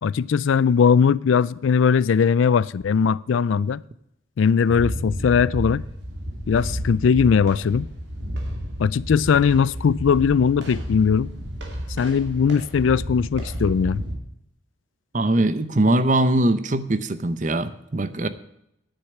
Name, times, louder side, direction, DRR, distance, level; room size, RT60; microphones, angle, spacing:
voice 1, 0.0-3.8 4.4-5.8 6.5-7.9 8.8-11.3 12.0-14.0, left 6 dB, 75° left, 0.4 m, -19 dB
sound 1, 4.7-14.1, equal, 60° right, 2.5 m, -32 dB
voice 2, 15.1-18.3, right 1 dB, 40° right, 0.7 m, -21 dB
10.0 x 6.7 x 8.8 m
head